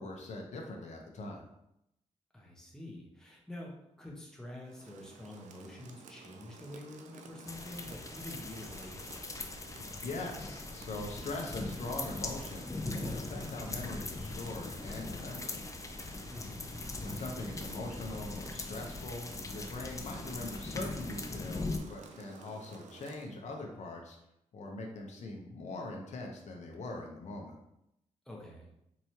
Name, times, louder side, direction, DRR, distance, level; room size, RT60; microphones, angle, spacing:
voice 1, 0.0-1.4 9.8-15.6 17.0-24.2 24.5-27.5, left 2 dB, 70° left, 1 dB, 0.7 m, -42 dB
voice 2, 2.3-9.1 16.3-16.7 28.3-28.7, left 1 dB, 5° left, -2 dB, 1.1 m, -47 dB
Rain, 4.6-23.3, right 5 dB, 85° right, 0.4 m, -54 dB
sound 1, 7.5-21.8, left 2 dB, 25° left, 0.5 m, -40 dB
4.6 x 3.0 x 2.8 m, 0.81 s
cardioid pair, 75°, 12 cm